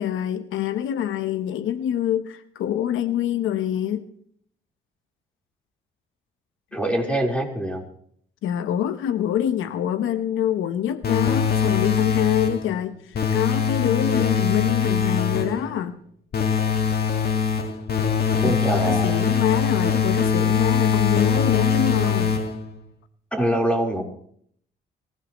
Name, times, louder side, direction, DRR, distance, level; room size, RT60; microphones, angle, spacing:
voice 1, 0.0-4.1 8.4-16.0 18.4-22.4, left 10 dB, 85° left, 10 dB, 1.0 m, -25 dB
voice 2, 6.7-7.8 18.4-19.2 23.3-24.0, right 1 dB, 5° left, 0 dB, 4.1 m, -24 dB
sound 1, 11.0-12.7 13.1-15.6 16.3-22.7, left 6 dB, 50° left, 1.9 m, -22 dB
24.5 x 15.5 x 3.1 m, 0.65 s
cardioid pair, 90°, 20 cm